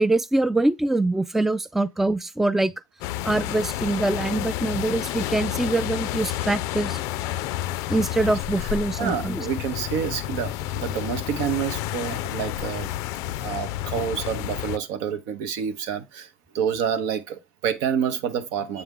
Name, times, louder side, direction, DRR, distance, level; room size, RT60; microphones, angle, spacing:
voice 1, 0.0-2.7 3.2-7.0 7.9-9.5, right 2 dB, 5° right, 0.3 m, -24 dB
sound 1, 3.0-14.8, left 14 dB, 70° left, 0.4 m, -30 dB
voice 2, 9.0-12.9 13.4-16.3 16.5-18.8, right 8 dB, 75° right, 0.8 m, -28 dB
7.6 x 3.5 x 3.6 m
supercardioid pair, 95°, 6 cm